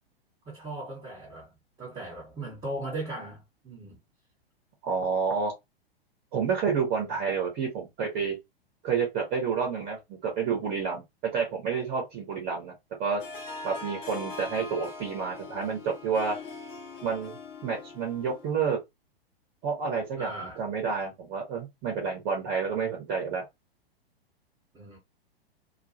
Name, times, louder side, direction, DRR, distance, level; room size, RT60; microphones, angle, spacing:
voice 1, 0.4-1.5 1.8-4.0 20.2-20.6 24.7-25.0, right 2 dB, 15° right, 1.1 m, -38 dB
voice 2, 4.8-5.5 6.3-8.4 8.8-12.7 13.0-13.2 13.6-16.4 17.0-17.4 17.6-18.8 19.6-20.3 20.6-23.4, right 6 dB, 30° right, 1.1 m, -29 dB
Harp, 13.2-18.7, left 3 dB, 15° left, 0.3 m, -42 dB
2.6 x 2.3 x 2.6 m
figure-of-eight pair, 105°, 31 cm